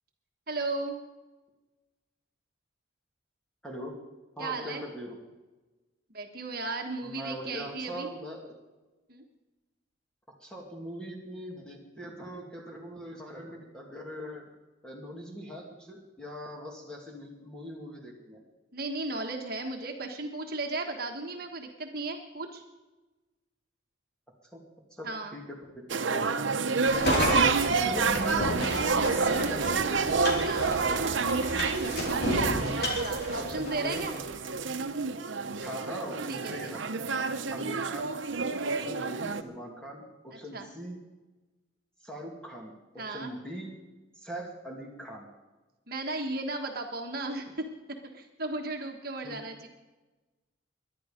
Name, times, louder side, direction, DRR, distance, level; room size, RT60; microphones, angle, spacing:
voice 1, 0.5-1.0 4.4-4.8 6.1-8.1 9.1-9.2 18.7-22.6 25.0-25.4 27.1-27.5 30.4-30.7 32.8-34.2 36.3-36.7 37.2-37.3 38.6-38.8 40.3-40.7 43.0-43.3 45.9-47.7 48.1-49.7, right 2 dB, 50° right, 3 dB, 1.4 m, -35 dB
voice 2, 3.6-4.0 4.4-5.2 7.0-8.4 10.4-14.4 14.8-18.4 24.5-24.6 24.9-25.1 25.3-26.3 27.8-30.1 30.4-32.3 33.4-34.0 35.6-36.8 37.5-38.1 38.6-41.0 42.0-43.7 44.1-45.3 49.2-49.4, equal, 5° left, -2 dB, 2.3 m, -41 dB
sound 1, 25.9-39.4, right 4 dB, 80° right, 0.9 m, -28 dB
sound 2, 26.9-34.1, left 1 dB, 55° left, 3.7 m, -33 dB
22.5 x 11.0 x 5.1 m, 1.2 s
head